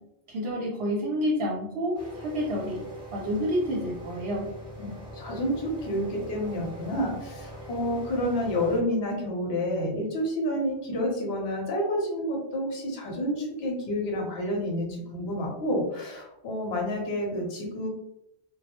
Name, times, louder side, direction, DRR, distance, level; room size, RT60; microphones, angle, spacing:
voice 1, 0.3-2.8 3.1-4.5, equal, 70° right, -1 dB, 0.8 m, -29 dB
sound 1, 1.9-8.8, right 1 dB, 5° right, 0.8 m, -42 dB
voice 2, 5.1-17.9, equal, 65° left, 0 dB, 1.0 m, -29 dB
2.2 x 2.0 x 2.8 m, 0.82 s
omnidirectional pair, 1.1 m